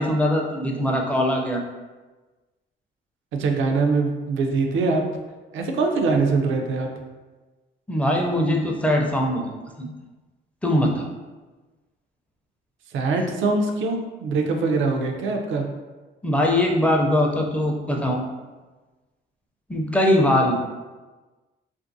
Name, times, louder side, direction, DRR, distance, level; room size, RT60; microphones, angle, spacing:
voice 1, 0.0-1.6 7.9-9.5 9.8-9.9 10.6-11.1 16.2-18.3 19.7-20.5, left 1 dB, 5° left, 0 dB, 0.4 m, -21 dB
voice 2, 3.3-5.0 5.5-6.9 12.9-15.6, right 3 dB, 75° right, 3 dB, 0.5 m, -23 dB
2.6 x 2.4 x 2.6 m, 1.2 s
cardioid pair, 90°, 20 cm